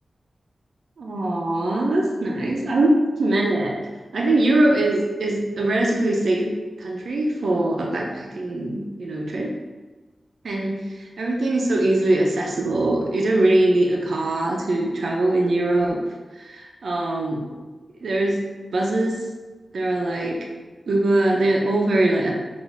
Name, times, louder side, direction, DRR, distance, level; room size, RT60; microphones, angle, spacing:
voice 1, 1.0-2.9 3.2-3.8 4.1-9.5 10.4-16.0 16.4-17.4 18.0-18.4 18.7-19.3 19.7-20.4 20.9-22.3, right 2 dB, 80° right, -1 dB, 0.6 m, -22 dB
4.5 x 2.6 x 3.4 m, 1.3 s
wide cardioid pair, 100°, 0 cm